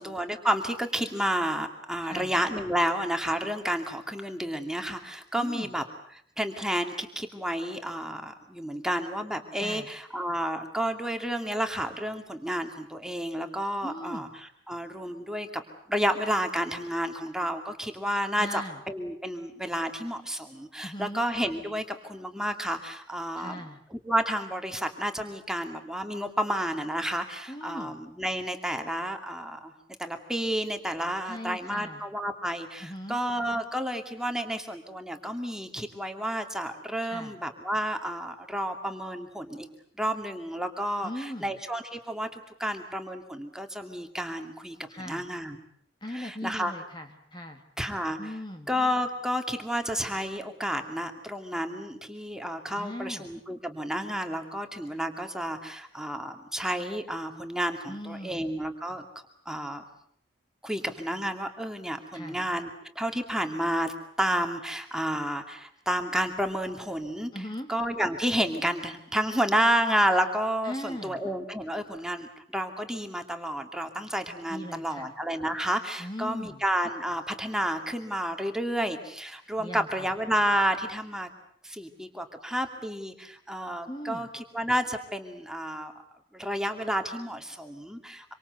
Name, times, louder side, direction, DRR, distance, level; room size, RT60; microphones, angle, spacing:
voice 1, 0.0-5.8 6.1-14.3 14.7-15.6 15.9-23.6 23.9-29.7 30.0-39.7 40.0-44.8 45.1-45.6 46.1-46.7 47.8-48.3 48.7-59.0 59.5-59.8 60.6-62.7 63.0-67.3 67.7-81.3 81.6-85.9 86.3-88.3, equal, 5° right, 5 dB, 2.4 m, -31 dB
voice 2, 2.0-2.4 5.4-5.7 9.6-9.9 13.8-14.3 18.4-18.8 20.8-21.2 23.4-23.8 27.5-28.0 31.3-32.1 32.8-33.2 37.0-37.4 41.0-41.6 44.9-45.3 46.0-47.6 48.2-48.7 52.7-53.3 57.9-58.5 62.1-62.4 67.3-67.7 70.6-71.2 74.5-75.1 76.0-76.6 79.6-80.1 83.9-84.3, left 1 dB, 25° left, 5 dB, 1.9 m, -39 dB
26.5 x 25.0 x 8.1 m, 0.65 s
head